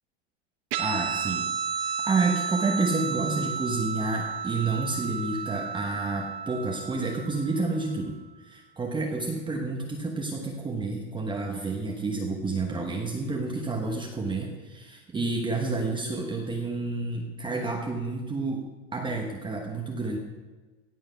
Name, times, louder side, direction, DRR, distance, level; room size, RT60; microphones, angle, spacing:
Guitar, 0.7-7.6, right 6 dB, 50° right, 1.2 m, -32 dB
voice 1, 0.8-18.6 18.9-20.2, right 3 dB, 10° right, 0 dB, 1.1 m, -30 dB
17.0 x 7.7 x 5.7 m, 1.3 s
supercardioid pair, 150°, 38 cm